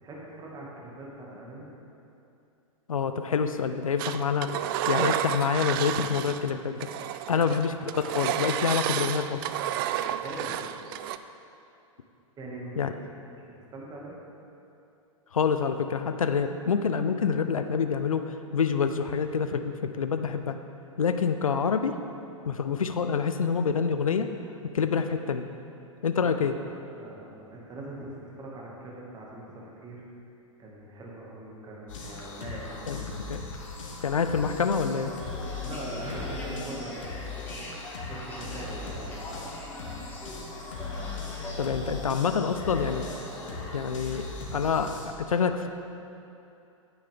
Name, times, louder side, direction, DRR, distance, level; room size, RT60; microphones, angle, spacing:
voice 1, 0.0-1.7 7.3-7.7 10.1-10.6 12.4-12.9 13.3-14.2 26.1-26.7 27.0-30.0 30.6-33.3 35.6-37.3 38.1-39.2, right 2 dB, 20° right, -3 dB, 2.2 m, -42 dB
voice 2, 2.9-4.5 4.9-6.9 7.3-9.4 12.8-12.9 15.3-20.6 21.0-22.0 22.5-24.3 24.7-25.5 26.0-26.5 32.9-33.4 34.0-35.1 41.6-43.1 43.7-45.7, left 6 dB, 80° left, 9 dB, 0.5 m, -27 dB
Engine, 4.0-6.5 6.8-11.2, right 11 dB, 40° right, 0.4 m, -31 dB
sound 1, 31.9-45.1, left 3 dB, 65° left, 1.8 m, -39 dB
sound 2, 34.4-44.2, left 1 dB, 10° left, 1.8 m, -42 dB
9.8 x 9.2 x 3.7 m, 2.7 s
figure-of-eight pair, 105°, 17 cm